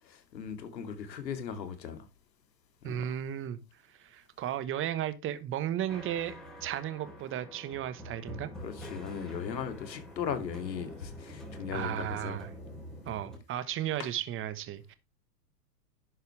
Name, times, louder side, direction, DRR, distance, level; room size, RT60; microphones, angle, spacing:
voice 1, 0.0-2.1 2.8-3.1 8.6-12.4 14.0-14.1, left 7 dB, 90° left, 2.5 m, -38 dB
voice 2, 2.8-3.6 3.9-6.4 6.6-8.5 11.7-12.5 13.0-14.9, right 11 dB, 25° right, 1.2 m, -34 dB
sound 1, 5.9-13.4, equal, ahead, 3.6 m, -46 dB
11.5 x 8.0 x 3.3 m
hypercardioid pair, 130°, 49 cm